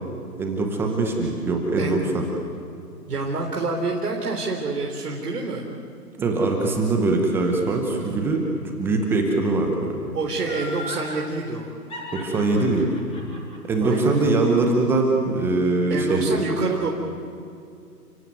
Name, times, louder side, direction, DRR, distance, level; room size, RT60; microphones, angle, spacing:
voice 1, 0.4-2.2 6.2-10.0 12.1-12.9 13.7-16.4, right 3 dB, 5° right, 1 dB, 0.9 m, -22 dB
voice 2, 3.1-5.7 10.1-11.7 13.8-14.2 15.9-16.9, right 3 dB, 65° right, 0 dB, 3.7 m, -27 dB
Laughter, 10.4-11.1 11.9-15.0 15.4-15.5, left 1 dB, 10° left, 7.4 m, -36 dB
30.0 x 16.5 x 9.4 m, 2.5 s
figure-of-eight pair, 145°, 49 cm